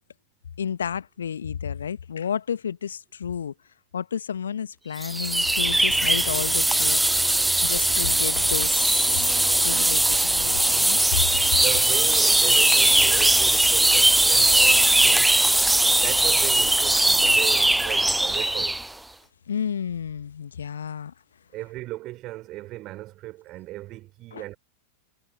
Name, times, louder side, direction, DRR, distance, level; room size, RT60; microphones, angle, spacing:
voice 1, 0.6-3.5 3.9-7.2 7.6-9.4 9.6-11.6 19.5-21.1 24.3-24.4, left 8 dB, 70° left, 1.5 m, -31 dB
sound 1, 5.0-18.9, right 1 dB, 5° right, 0.8 m, -20 dB
voice 2, 11.6-15.3 15.9-18.8 21.5-24.5, right 17 dB, 35° right, 4.9 m, -37 dB
figure-of-eight pair, 90°, 0 cm